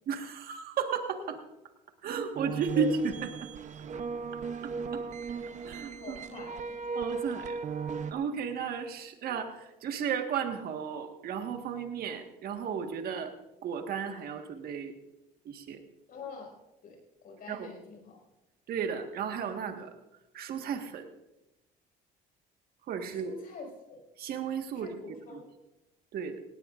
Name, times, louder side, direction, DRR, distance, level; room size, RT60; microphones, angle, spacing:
voice 1, 0.1-1.4 2.0-3.5 4.9-5.0 5.6-6.2 6.9-7.5 8.1-13.3 13.6-14.9 15.5-15.8 17.5-17.7 18.7-19.9 20.3-21.1 22.9-23.3 24.2-25.4 26.1-26.4, right 6 dB, 65° right, 5 dB, 1.6 m, -34 dB
sound 1, 2.3-8.1, right 5 dB, 45° right, 0.8 m, -37 dB
voice 2, 6.0-6.7 9.2-9.3 16.1-16.6 16.8-17.0 17.2-18.2 23.1-24.0 24.7-25.5, left 3 dB, 60° left, 0 dB, 5.3 m, -43 dB
18.0 x 18.0 x 2.5 m, 0.97 s
cardioid pair, 110°, 17 cm